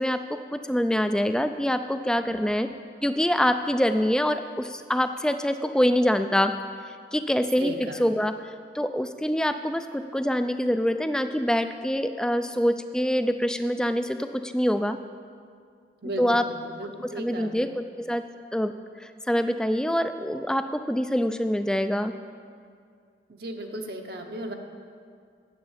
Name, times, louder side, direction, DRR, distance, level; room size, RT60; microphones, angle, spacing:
voice 1, 0.0-2.7 3.0-6.5 6.9-8.3 8.7-15.0 16.2-16.5 16.8-18.2 18.5-22.1, equal, 5° left, 9 dB, 0.3 m, -25 dB
voice 2, 7.6-8.0 16.0-17.7 23.4-24.5, right 1 dB, 60° right, 3 dB, 0.9 m, -35 dB
9.7 x 7.8 x 7.2 m, 2.2 s
head